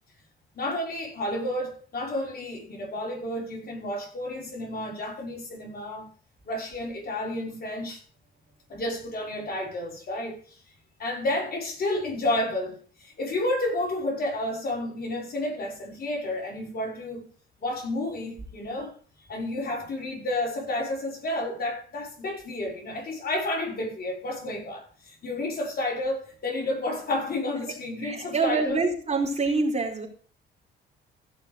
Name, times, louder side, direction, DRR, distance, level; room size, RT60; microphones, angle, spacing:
voice 1, 0.5-6.1 6.5-8.0 8.7-10.6 11.0-17.3 17.6-18.9 19.3-28.8, left 1 dB, 50° left, 5.6 m, -31 dB
voice 2, 28.0-30.1, right 3 dB, 35° right, 4.3 m, -26 dB
16.0 x 6.1 x 5.2 m
cardioid pair, 90°, 20 cm